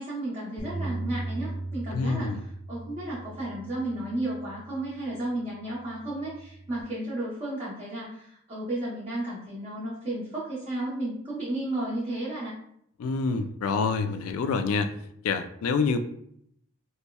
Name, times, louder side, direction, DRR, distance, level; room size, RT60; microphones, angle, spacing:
voice 1, 0.0-12.5, right 1 dB, 25° right, -9 dB, 0.9 m, -33 dB
Bass guitar, 0.6-5.0 5.7-6.8, right 2 dB, 20° left, 0.6 m, -38 dB
voice 2, 1.9-2.4 13.0-14.9 15.2-16.0, left 4 dB, 75° left, 8 dB, 0.3 m, -27 dB
5.3 x 2.1 x 2.3 m, 0.70 s
head